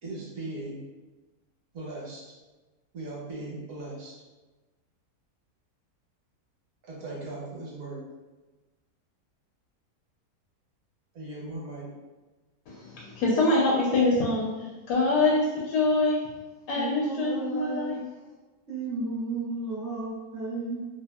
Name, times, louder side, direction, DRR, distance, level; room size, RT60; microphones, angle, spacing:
voice 1, 0.0-0.8 1.7-2.2 2.9-4.1 6.8-8.0 11.1-11.9, right 2 dB, 60° right, -5 dB, 1.1 m, -38 dB
voice 2, 12.7-16.2 16.7-18.0, left 2 dB, 85° left, -3 dB, 1.2 m, -25 dB
voice 3, 16.7-17.9 18.7-20.8, right 3 dB, 45° right, -9 dB, 0.8 m, -33 dB
2.9 x 2.6 x 2.3 m, 1.2 s
omnidirectional pair, 1.7 m